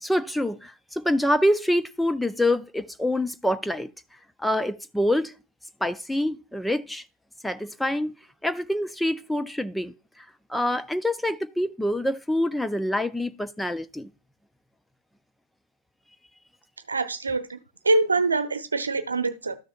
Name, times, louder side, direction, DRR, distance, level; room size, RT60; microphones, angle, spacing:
voice 1, 0.0-3.9 4.4-5.3 5.8-7.0 7.4-8.1 8.4-14.1, left 1 dB, 5° left, 0.4 m, -26 dB
voice 2, 16.9-17.6 17.8-19.6, right 3 dB, 75° right, 0.8 m, -24 dB
13.0 x 6.2 x 2.4 m
figure-of-eight pair, 90°, 0 cm